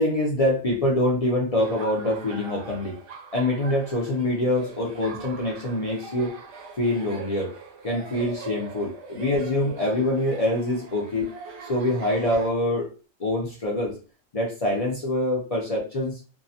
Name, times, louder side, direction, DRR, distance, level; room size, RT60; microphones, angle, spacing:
voice 1, 0.0-3.0 3.3-6.4 6.8-7.5 7.8-11.2 11.6-12.9 13.2-14.0 14.3-16.2, left 1 dB, 50° left, -3 dB, 0.4 m, -25 dB
Laughter, 1.6-12.5, right 5 dB, 70° right, 0.9 m, -42 dB
2.7 x 2.1 x 2.7 m, 0.35 s
omnidirectional pair, 1.3 m